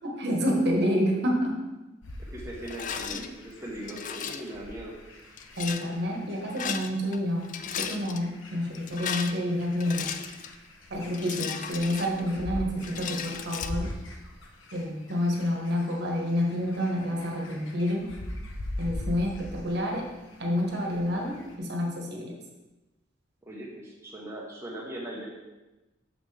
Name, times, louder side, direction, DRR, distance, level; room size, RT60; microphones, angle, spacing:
voice 1, 0.0-1.6 3.1-3.2 5.6-7.5 7.8-10.1 10.9-13.9 14.7-18.1 18.8-20.1 20.4-22.4, left 1 dB, 60° right, 0 dB, 1.3 m, -28 dB
sound 1, 2.0-21.6, left 1 dB, 80° left, 1.0 m, -42 dB
voice 2, 2.3-4.9 11.2-11.6 23.4-25.3, right 1 dB, 15° right, -4 dB, 1.1 m, -40 dB
Rattle, 2.7-3.3 3.9-4.5 5.4-5.9 6.5-7.2 7.4-8.2 8.8-10.6 11.1-12.4 12.8-13.7, left 7 dB, 40° left, 0.4 m, -35 dB
6.9 x 5.8 x 3.3 m, 1.1 s
head